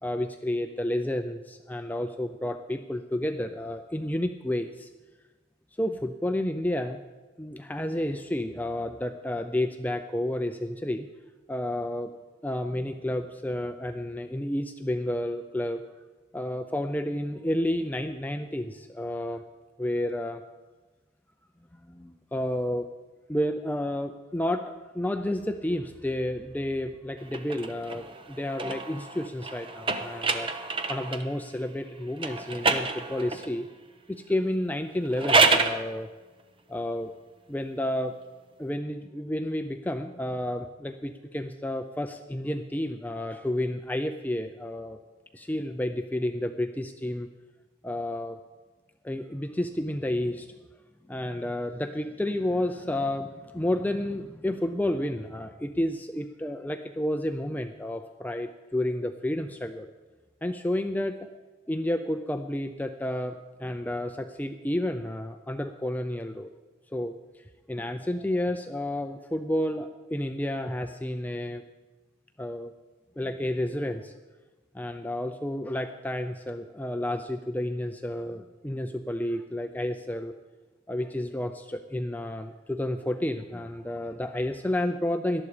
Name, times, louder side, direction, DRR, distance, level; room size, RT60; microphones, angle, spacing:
voice 1, 0.0-4.9 5.8-7.0 7.4-11.1 11.5-12.1 12.4-15.8 16.3-19.4 19.8-20.4 21.9-22.9 23.3-30.5 30.9-33.7 34.1-36.1 36.7-37.1 37.5-38.2 38.6-45.0 45.3-47.3 47.8-48.4 49.0-50.5 51.1-59.9 60.4-61.3 61.7-66.5 66.9-67.1 67.7-71.6 72.4-72.7 73.2-74.1 74.7-80.3 80.9-85.4, left 1 dB, 10° left, 6 dB, 0.5 m, -31 dB
sound 1, 27.3-31.3 32.2-33.5 35.0-35.8, right 3 dB, 25° right, 0.9 m, -27 dB
18.0 x 12.5 x 5.0 m, 1.2 s
head